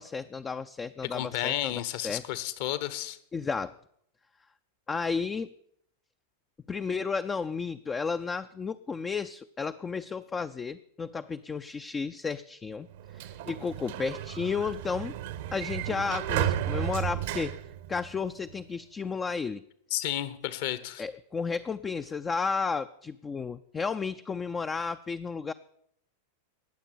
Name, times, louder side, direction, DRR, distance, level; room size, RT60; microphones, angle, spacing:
voice 1, 0.0-1.7 2.0-2.2 3.3-3.8 4.9-5.5 6.7-12.9 13.1-15.2 15.5-17.6 17.9-19.6 21.0-25.5, left 5 dB, 20° left, 10 dB, 0.5 m, -33 dB
voice 2, 1.1-3.2 19.9-21.0, left 13 dB, 50° left, 15 dB, 1.2 m, -32 dB
Sliding door, 12.9-18.5, right 11 dB, 55° right, 0.9 m, -33 dB
19.0 x 7.5 x 8.6 m, 0.71 s
figure-of-eight pair, 90°, 0 cm